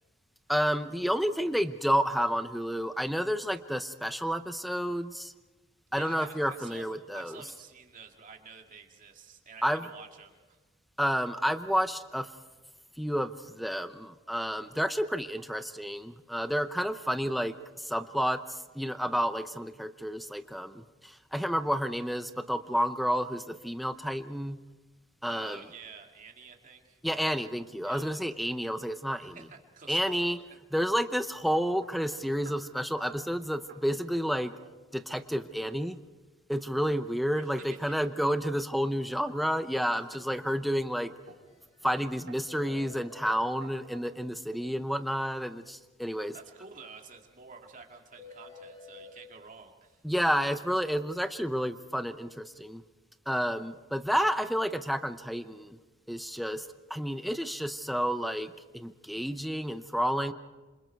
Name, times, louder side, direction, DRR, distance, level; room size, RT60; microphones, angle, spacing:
voice 1, 0.5-5.3 5.9-7.4 9.6-9.9 11.0-12.3 13.0-24.6 25.2-25.6 27.0-29.4 29.9-30.4 30.7-34.5 34.9-36.0 36.5-41.1 41.8-46.4 50.0-52.8 53.3-55.8 56.1-60.3, equal, ahead, 11 dB, 0.7 m, -30 dB
voice 2, 5.9-6.9 7.1-10.6 25.3-27.0 27.8-28.1 29.2-30.3 37.3-38.0 40.0-40.1 46.3-50.0, right 5 dB, 40° right, 3 dB, 2.4 m, -50 dB
sound 1, 31.8-32.7 33.2-33.4 33.7-33.9 34.1-34.8 35.1-35.5 38.8-39.5 40.1-40.5 41.3-41.5 41.8-42.0 42.3-44.1, right 4 dB, 60° right, 5.7 m, -53 dB
sound 2, 41.2-41.3 41.6-41.7 42.0-42.1 42.5-43.4 48.2-49.1, left 4 dB, 30° left, 4.4 m, -49 dB
27.5 x 27.0 x 4.7 m, 1.2 s
head